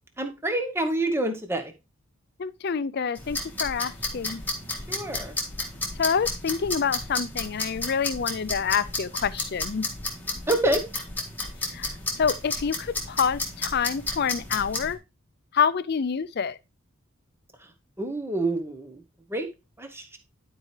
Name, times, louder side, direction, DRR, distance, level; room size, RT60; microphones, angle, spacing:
voice 1, 0.2-1.7 4.9-5.3 10.5-10.8 18.0-19.0 19.3-19.5 19.8-20.2, right 1 dB, 10° right, 0.9 m, -27 dB
voice 2, 2.4-4.4 6.0-9.8 11.7-11.9 12.2-15.0 15.5-16.6, left 6 dB, 50° left, 0.4 m, -27 dB
sound 1, 3.1-14.9, left 2 dB, 10° left, 1.7 m, -33 dB
12.0 x 4.6 x 3.2 m
head